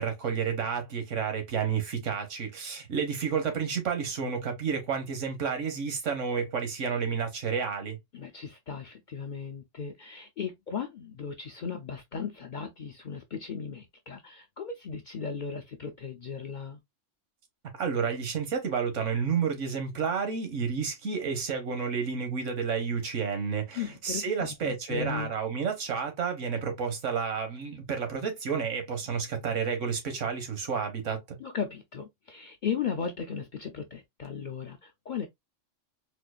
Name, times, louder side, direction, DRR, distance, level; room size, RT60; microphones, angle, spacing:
voice 1, 0.0-8.0 17.7-31.4, right 6 dB, 80° right, 1.3 m, -30 dB
voice 2, 8.1-16.8 23.7-25.3 31.4-35.3, left 6 dB, 60° left, 0.5 m, -36 dB
4.3 x 2.3 x 2.3 m
omnidirectional pair, 1.3 m